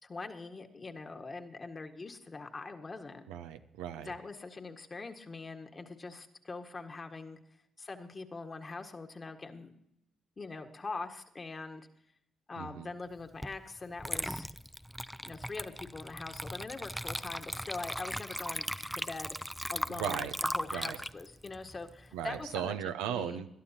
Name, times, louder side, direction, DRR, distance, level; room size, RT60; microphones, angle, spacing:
voice 1, 0.0-3.3 4.0-7.4 7.8-9.7 10.4-11.9 12.5-14.5 15.2-18.6 18.9-19.3 19.7-22.8 23.1-23.4, left 3 dB, 35° left, 5 dB, 1.7 m, -43 dB
voice 2, 3.3-4.1 12.6-12.9 19.9-20.3 20.7-21.0 22.1-23.5, right 10 dB, 90° right, 8 dB, 0.7 m, -37 dB
Water / Liquid, 13.4-13.6 14.0-22.5, equal, ahead, 0.5 m, -38 dB
21.0 x 12.0 x 2.9 m, 0.79 s
supercardioid pair, 55°, 0 cm